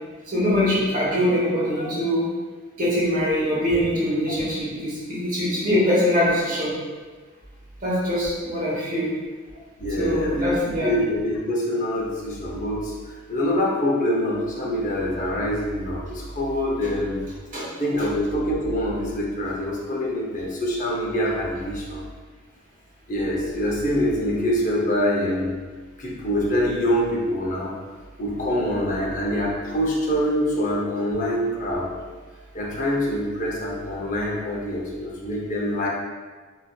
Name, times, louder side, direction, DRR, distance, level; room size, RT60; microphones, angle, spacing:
voice 1, 0.3-2.3 2.8-6.7 7.8-9.1 10.0-10.9 17.5-17.6, left 1 dB, 40° right, -7 dB, 1.0 m, -23 dB
voice 2, 9.8-17.3 17.8-22.0 23.1-25.5 26.0-27.7 28.2-31.9 32.5-35.9, equal, 40° left, -3 dB, 0.6 m, -25 dB
4.0 x 2.6 x 2.3 m, 1.4 s
head